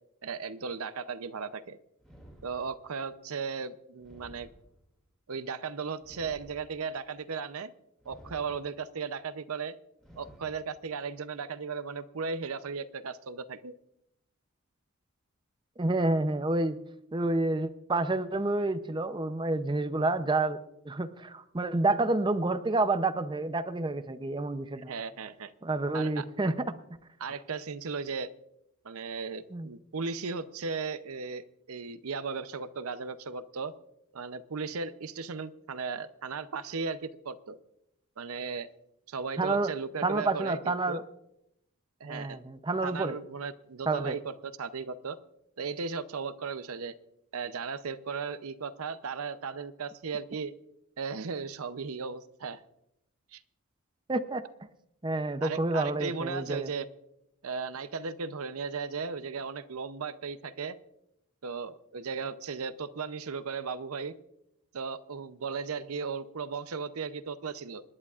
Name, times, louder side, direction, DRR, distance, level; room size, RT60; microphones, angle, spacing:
voice 1, 0.2-1.8 2.4-4.5 5.3-7.7 8.1-9.7 10.2-13.7 24.9-25.5 25.9-26.3 27.2-28.3 28.8-33.7 34.1-37.6 38.2-38.7 39.1-41.0 42.0-42.4 42.8-45.2 45.6-46.9 47.3-50.5 51.0-52.6 53.3-53.4 55.4-56.9 57.4-60.8 61.4-64.1 64.7-67.8, right 5 dB, 75° right, 14 dB, 0.7 m, -36 dB
sound 1, 2.0-3.1 4.0-5.1 6.0-7.1 8.0-9.0 10.0-11.0, equal, 5° left, 2.5 m, -54 dB
voice 2, 15.8-16.8 17.1-20.6 20.8-24.9 25.6-26.7 29.5-29.7 39.4-39.7 40.0-41.0 42.1-43.2 43.9-44.1 54.1-54.4 55.0-56.7, right 2 dB, 20° right, 10 dB, 0.6 m, -29 dB
27.0 x 11.0 x 2.5 m, 0.81 s
head